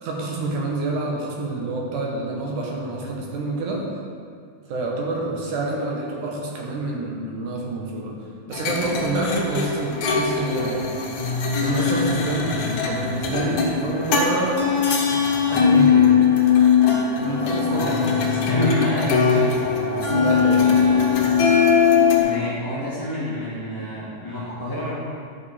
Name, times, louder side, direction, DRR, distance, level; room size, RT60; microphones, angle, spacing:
voice 1, 0.0-3.9 4.7-8.1 8.5-10.9 11.2-12.6 12.9-14.6 15.5-16.1 17.1-17.9 20.0-20.7, right 2 dB, 70° right, -2 dB, 2.6 m, -27 dB
sound 1, 8.5-22.2, left 6 dB, 70° left, 2.2 m, -20 dB
voice 2, 17.6-19.5 22.2-24.9, left 1 dB, 10° left, -12 dB, 1.2 m, -28 dB
11.5 x 6.1 x 4.2 m, 2.2 s
omnidirectional pair, 3.8 m